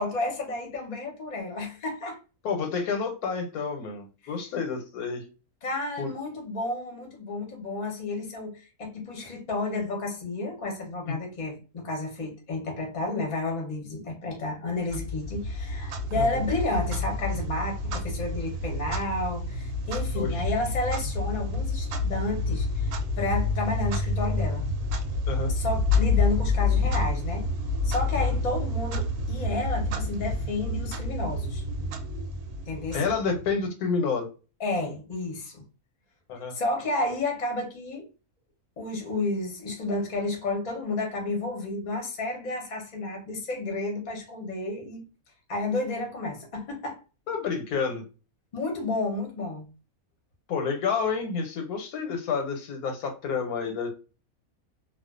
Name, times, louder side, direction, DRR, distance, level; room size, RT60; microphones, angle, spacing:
voice 1, 0.0-2.2 5.6-24.7 25.5-27.5 27.8-31.6 32.7-33.0 34.6-35.6 36.5-38.1 38.8-45.0 45.5-47.0 48.5-49.7, left 2 dB, 35° left, 0.7 m, -31 dB
voice 2, 2.4-5.2 6.0-6.1 11.1-11.2 16.0-16.4 20.1-20.3 25.3-25.5 28.2-28.3 32.9-34.3 36.3-36.6 47.3-48.0 50.5-53.9, left 5 dB, 85° left, 1.1 m, -29 dB
Clock, 14.9-33.6, left 3 dB, 85° right, 1.1 m, -28 dB
2.4 x 2.3 x 2.4 m
omnidirectional pair, 1.6 m